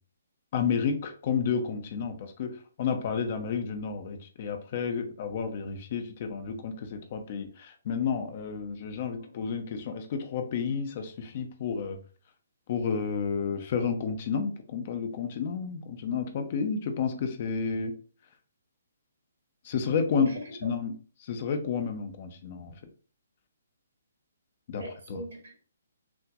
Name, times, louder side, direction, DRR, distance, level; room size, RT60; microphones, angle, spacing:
voice 1, 0.5-12.0 12.7-17.9 19.6-20.3 20.6-20.9 21.2-22.8 24.7-24.8 25.1-25.2, left 6 dB, 40° left, 6 dB, 0.6 m, -31 dB
voice 2, 20.1-20.7 24.8-25.5, right 1 dB, 65° right, 0 dB, 1.9 m, -39 dB
6.0 x 2.5 x 2.5 m, 0.40 s
figure-of-eight pair, 130°, 0 cm